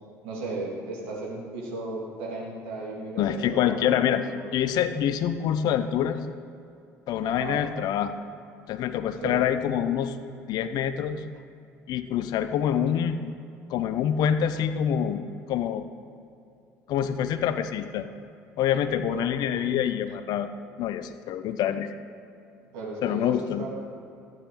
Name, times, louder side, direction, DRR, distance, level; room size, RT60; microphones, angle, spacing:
voice 1, 0.2-4.5 7.2-7.7 9.2-9.5 19.1-19.6 22.7-23.7, right 2 dB, 65° right, -3 dB, 2.4 m, -35 dB
voice 2, 3.2-4.2 4.5-6.2 7.1-8.1 8.7-10.2 10.5-11.2 11.9-13.3 13.7-15.2 15.5-15.9 16.9-18.1 18.6-20.5 20.8-21.9 23.0-23.7, left 9 dB, 50° left, 11 dB, 0.5 m, -26 dB
12.0 x 8.8 x 3.9 m, 2.5 s
figure-of-eight pair, 60°, 9 cm